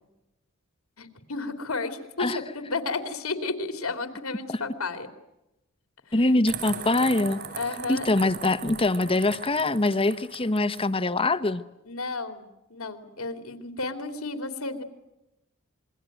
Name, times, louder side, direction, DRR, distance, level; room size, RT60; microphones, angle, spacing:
voice 1, 1.0-5.1 6.1-6.3 7.6-8.1 11.8-14.8, left 3 dB, 85° left, 8 dB, 3.0 m, -32 dB
voice 2, 6.1-7.4 7.9-11.6, left 2 dB, 25° left, 12 dB, 1.1 m, -23 dB
sound 1, 6.5-10.9, right 6 dB, 50° right, 4.8 m, -39 dB
27.0 x 22.5 x 9.2 m, 0.93 s
head